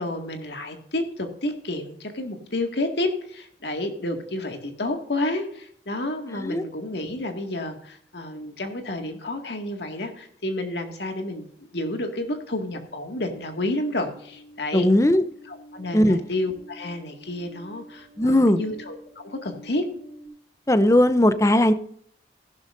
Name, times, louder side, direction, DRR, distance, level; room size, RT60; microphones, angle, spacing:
voice 1, 0.0-11.5 11.7-14.9 15.5-19.9, left 1 dB, 80° left, 4 dB, 2.1 m, -30 dB
sound 1, 14.1-20.3, left 1 dB, 40° right, 3.0 m, -48 dB
voice 2, 14.7-15.2 15.9-16.2 18.2-18.6 20.7-21.7, left 1 dB, 15° left, 12 dB, 0.6 m, -18 dB
15.0 x 12.0 x 2.6 m, 0.63 s
head